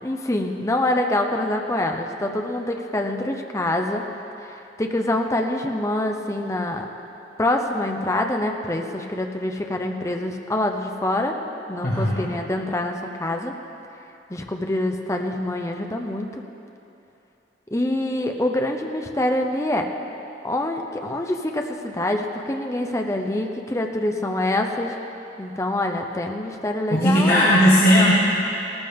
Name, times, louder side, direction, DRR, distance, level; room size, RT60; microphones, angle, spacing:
voice 1, 0.0-4.1 4.4-6.9 7.4-11.3 11.7-13.5 14.3-16.4 17.7-19.9 20.4-25.0 25.4-27.5, left 1 dB, 15° left, 3 dB, 0.7 m, -25 dB
voice 2, 11.8-12.2 26.9-28.1, equal, 50° left, -7 dB, 1.6 m, -17 dB
17.5 x 13.5 x 3.6 m, 2.8 s
head